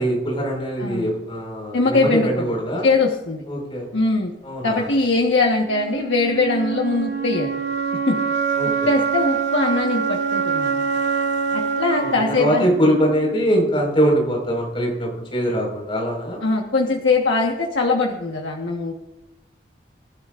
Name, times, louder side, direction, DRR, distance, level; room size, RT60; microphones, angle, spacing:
voice 1, 0.0-2.8 3.5-3.9 4.4-4.9 8.6-8.9 12.0-12.1 12.4-16.4, equal, 30° left, 0 dB, 4.9 m, -22 dB
voice 2, 0.8-1.1 1.7-2.5 2.8-3.4 3.9-4.3 4.6-7.5 8.1-8.2 8.9-10.9 11.5-12.7 16.4-19.1, left 3 dB, 85° left, 0 dB, 1.3 m, -21 dB
sound 1, 5.7-13.6, right 6 dB, 70° right, 2.3 m, -25 dB
26.5 x 12.0 x 2.5 m, 0.94 s
head